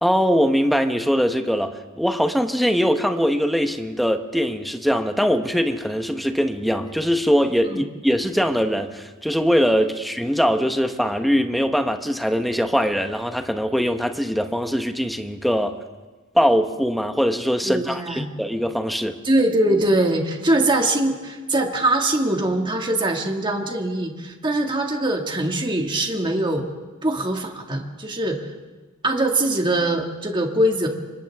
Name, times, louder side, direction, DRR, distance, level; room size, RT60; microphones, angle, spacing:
voice 1, 0.0-15.8 16.3-19.2, equal, ahead, 6 dB, 1.1 m, -22 dB
voice 2, 17.6-18.3 19.2-26.7 27.0-28.5 29.0-30.9, right 1 dB, 25° right, 2 dB, 2.0 m, -22 dB
29.5 x 25.0 x 3.6 m, 1.3 s
head